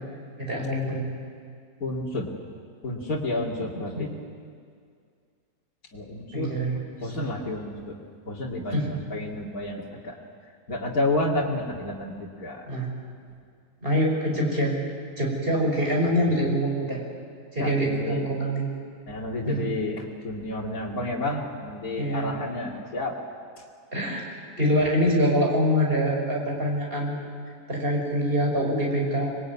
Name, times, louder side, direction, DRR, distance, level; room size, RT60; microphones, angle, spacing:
voice 1, 0.4-1.0 3.7-4.1 6.3-6.8 7.2-7.3 8.7-9.0 12.7-12.9 13.8-14.8 15.2-17.0 17.5-18.7 19.4-19.6 22.0-22.3 23.9-24.3 24.6-27.2 27.7-29.4, equal, 35° right, -1 dB, 6.0 m, -25 dB
voice 2, 1.8-2.3 2.8-4.1 5.9-6.5 7.0-8.0 8.3-10.1 10.7-12.7 15.6-15.8 17.6-18.3 19.1-23.2 24.8-24.9, left 2 dB, 65° left, -5 dB, 2.9 m, -30 dB
26.0 x 21.5 x 9.6 m, 2.2 s
omnidirectional pair, 1.6 m